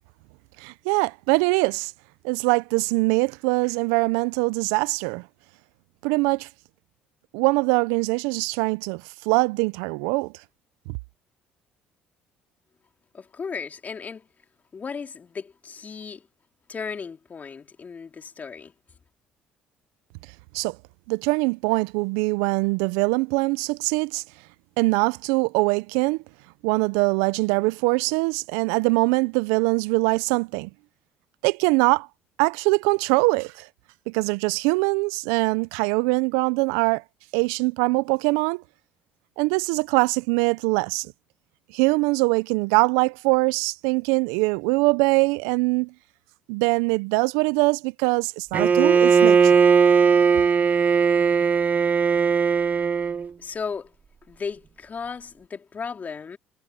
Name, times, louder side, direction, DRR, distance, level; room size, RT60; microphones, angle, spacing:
voice 1, 0.6-1.9 2.2-5.3 6.0-6.5 7.3-10.3 10.9-11.0 20.5-20.8 21.1-24.2 24.8-26.2 26.6-30.7 31.4-32.1 32.4-33.7 34.1-37.0 37.3-38.6 39.4-41.1 41.7-45.9 46.5-49.6, right 26 dB, 80° right, 0.5 m, -23 dB
voice 2, 13.1-14.3 14.7-16.3 16.7-18.7 53.4-53.9 54.3-56.4, left 5 dB, 40° left, 3.0 m, -35 dB
Bowed string instrument, 48.5-53.3, right 6 dB, 40° right, 1.5 m, -18 dB
hypercardioid pair, 60°, 4 cm